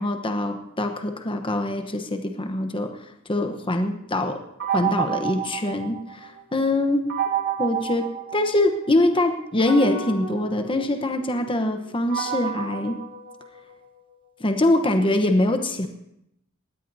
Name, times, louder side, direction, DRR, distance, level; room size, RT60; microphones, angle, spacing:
voice 1, 0.0-2.9 3.3-4.4 4.7-7.1 7.6-13.0 14.4-15.9, left 1 dB, 25° left, 6 dB, 1.0 m, -23 dB
sound 1, 4.6-6.4 7.1-8.9 9.6-13.9, right 8 dB, 65° right, 2.6 m, -30 dB
19.5 x 16.5 x 2.7 m, 0.79 s
head